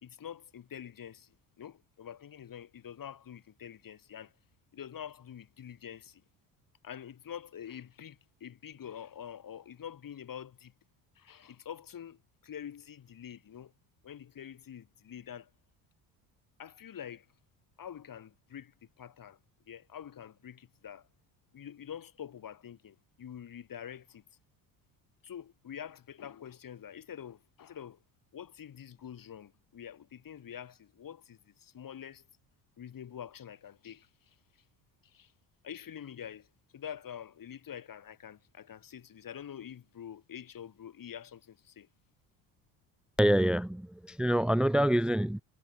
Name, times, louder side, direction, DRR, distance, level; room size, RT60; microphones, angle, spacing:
voice 1, 0.0-4.3 4.7-6.2 6.8-10.7 11.2-13.7 14.0-15.5 16.6-17.3 17.8-19.4 19.7-21.1 21.5-24.2 25.2-28.0 28.3-32.2 32.8-34.4 35.0-35.3 35.6-36.5 36.7-41.9, left 9 dB, 45° left, 4.1 m, -46 dB
voice 2, 43.2-45.4, right 1 dB, ahead, 0.7 m, -26 dB
hypercardioid pair, 70°, 45 cm